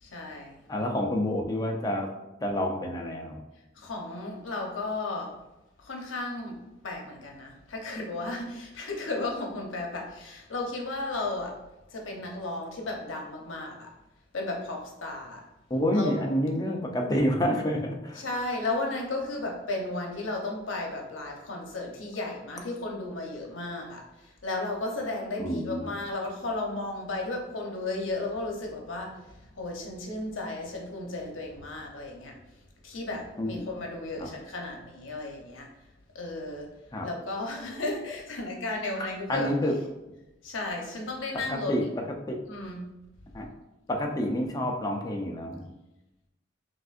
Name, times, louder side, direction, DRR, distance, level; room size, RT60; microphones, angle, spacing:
voice 1, 0.0-0.6 3.8-5.3 5.8-6.6 6.8-11.5 11.9-13.9 14.3-15.4 15.9-16.1 18.1-32.4 32.8-35.7 36.1-36.7 37.0-39.5 40.4-41.7 42.5-42.9, left 2 dB, 90° left, 0 dB, 0.8 m, -34 dB
voice 2, 0.7-2.1 2.4-3.4 15.7-18.2 25.4-25.9 33.4-33.5 34.2-34.3 36.9-37.1 39.3-39.7 41.5-41.8 42.3-42.4 43.3-43.5 43.9-45.7, equal, 20° left, 1 dB, 0.5 m, -28 dB
6.1 x 2.6 x 2.5 m, 0.98 s
head